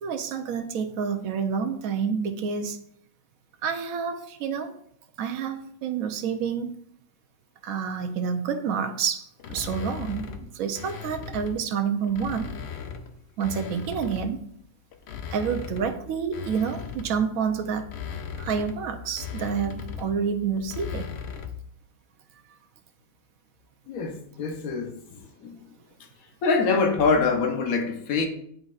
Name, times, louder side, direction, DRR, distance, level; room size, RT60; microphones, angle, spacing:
voice 1, 0.0-2.8 3.6-4.7 5.2-6.7 7.6-12.5 13.4-14.4 15.3-17.9 18.4-21.1, right 6 dB, 75° right, 1.1 m, -28 dB
sound 1, 9.4-11.6 12.0-14.4 14.9-21.7, left 7 dB, 60° left, 0.7 m, -38 dB
voice 2, 23.9-25.6 26.4-28.3, left 4 dB, 75° left, 1.3 m, -25 dB
10.5 x 3.9 x 2.4 m
omnidirectional pair, 1.5 m